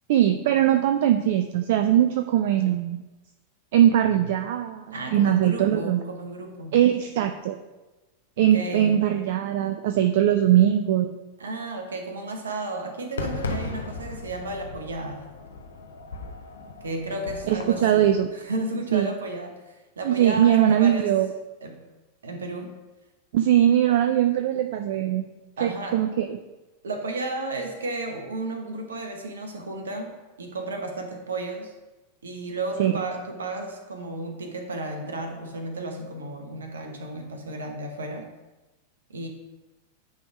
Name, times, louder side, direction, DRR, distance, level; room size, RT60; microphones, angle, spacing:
voice 1, 0.1-3.0 3.7-6.0 6.7-7.6 8.4-11.1 17.5-18.3 18.9-19.1 20.0-21.3 23.3-25.3 25.6-26.4 32.8-32.9, right 11 dB, 55° right, 7 dB, 0.4 m, -21 dB
voice 2, 4.9-6.8 8.4-9.1 11.4-15.3 16.8-21.1 21.6-21.8 22.2-22.8 25.6-26.0 26.8-31.7 32.2-38.3 39.1-39.3, right 2 dB, 70° right, 4 dB, 1.1 m, -33 dB
Fireworks, 13.2-18.2, left 3 dB, 70° left, 0.7 m, -36 dB
9.6 x 3.5 x 4.8 m, 1.1 s
figure-of-eight pair, 90°, 0 cm